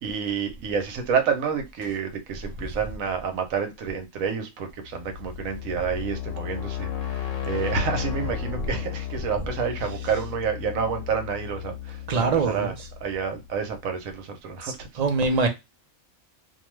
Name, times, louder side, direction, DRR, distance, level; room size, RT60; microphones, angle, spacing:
voice 1, 0.0-12.7 13.0-14.9, right 6 dB, 85° right, 1.1 m, -29 dB
sound 1, 4.8-13.6, left 11 dB, 75° left, 1.1 m, -34 dB
voice 2, 12.1-12.7 14.6-15.5, right 4 dB, 55° right, 0.4 m, -24 dB
2.6 x 2.3 x 3.0 m
omnidirectional pair, 1.4 m